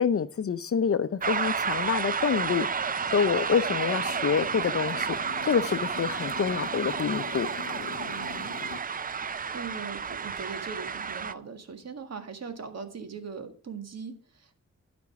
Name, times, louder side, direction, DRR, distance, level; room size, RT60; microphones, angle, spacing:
voice 1, 0.0-2.7 3.1-5.2 5.4-7.5, left 6 dB, 50° left, 0.6 m, -27 dB
sound 1, 1.2-11.3, right 6 dB, 30° right, 0.4 m, -31 dB
Motorcycle, 1.6-8.8, left 7 dB, 75° left, 0.9 m, -44 dB
voice 2, 8.0-8.6 9.0-14.6, right 5 dB, 60° right, 1.8 m, -41 dB
12.5 x 5.2 x 4.7 m
wide cardioid pair, 85°, 29 cm